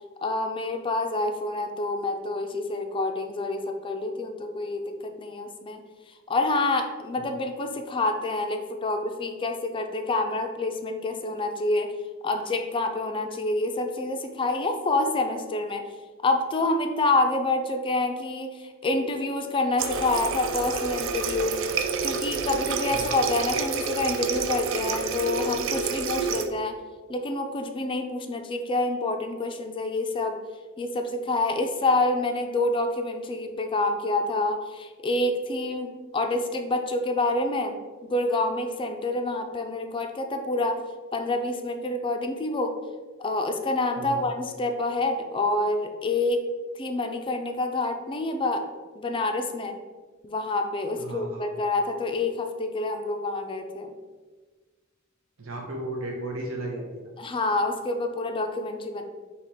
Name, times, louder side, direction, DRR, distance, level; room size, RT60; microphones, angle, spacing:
voice 1, 0.2-5.8 6.3-11.9 12.2-15.8 16.2-21.6 22.0-26.7 27.1-30.4 30.8-37.8 38.1-40.8 41.1-42.7 43.2-46.4 46.8-48.7 49.0-49.8 50.2-53.9 57.2-59.0, left 2 dB, 25° left, 5 dB, 0.3 m, -27 dB
Water tap faucet, 19.8-26.5, right 5 dB, 65° right, 0.4 m, -29 dB
voice 2, 51.0-51.5 55.4-57.1, right 1 dB, 90° right, 0 dB, 0.9 m, -34 dB
4.0 x 2.9 x 4.4 m, 1.4 s
head